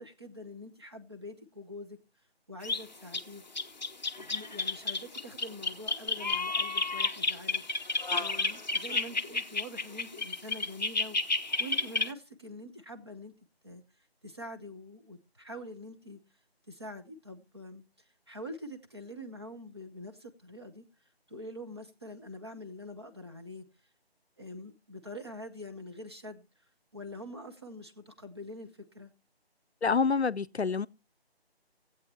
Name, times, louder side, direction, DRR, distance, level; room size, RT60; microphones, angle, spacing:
voice 1, 0.0-2.0 2.5-3.4 4.1-7.6 8.1-11.2 11.6-13.3 13.6-13.8 14.2-16.2 16.7-17.8 18.3-20.8 21.3-23.6 24.4-26.4 26.9-28.7 28.9-29.1, left 1 dB, 25° right, 0.9 m, -45 dB
sound 1, 2.6-2.8 3.1-3.2 3.5-12.1, left 3 dB, 45° left, 0.6 m, -31 dB
voice 2, 29.8-30.9, left 5 dB, 85° left, 0.6 m, -27 dB
16.5 x 8.2 x 4.2 m
figure-of-eight pair, 160°, 32 cm